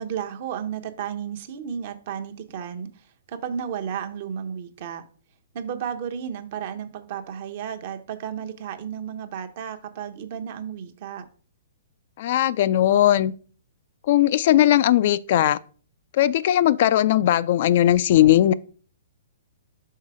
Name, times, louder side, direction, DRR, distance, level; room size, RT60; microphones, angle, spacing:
voice 1, 0.0-5.0 5.5-11.3, right 8 dB, 50° right, 0.8 m, -33 dB
voice 2, 12.2-13.3 14.1-15.6 16.1-18.5, left 12 dB, 55° left, 0.3 m, -18 dB
5.6 x 4.0 x 4.7 m
hypercardioid pair, 125°, 0 cm